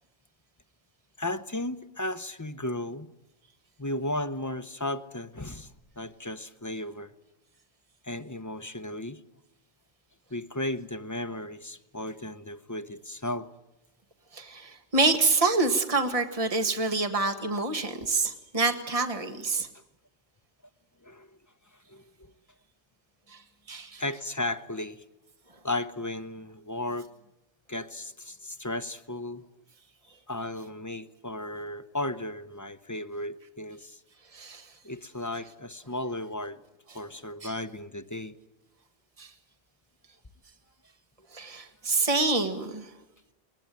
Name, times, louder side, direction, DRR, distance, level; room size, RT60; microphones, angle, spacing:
voice 1, 1.2-3.1 3.8-7.1 8.0-9.2 10.3-13.5 21.0-21.3 21.9-22.3 24.0-25.0 25.6-27.1 27.7-29.5 30.3-34.0 34.8-36.6 36.9-38.4, left 1 dB, 20° left, 9 dB, 0.7 m, -35 dB
voice 2, 14.3-19.7 23.3-23.4 23.7-24.0 34.3-34.6 37.4-37.5 39.2-39.3 41.3-42.9, right 3 dB, 30° right, 5 dB, 1.8 m, -27 dB
21.0 x 20.0 x 9.2 m, 0.97 s
omnidirectional pair, 1.2 m